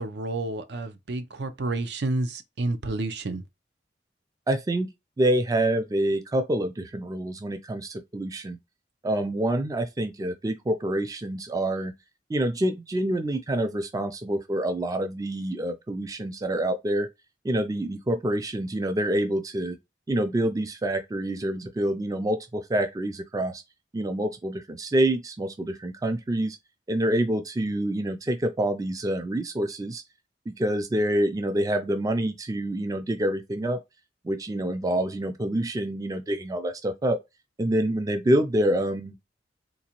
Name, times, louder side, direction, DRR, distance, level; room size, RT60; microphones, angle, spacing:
voice 1, 0.0-3.4, right 2 dB, 65° right, 0.6 m, -30 dB
voice 2, 4.5-8.6 9.0-11.9 12.3-17.1 17.4-19.8 20.1-23.6 23.9-26.6 26.9-30.0 30.5-33.8 34.2-37.2 37.6-39.1, right 1 dB, 20° right, 0.3 m, -27 dB
3.9 x 2.4 x 2.9 m
head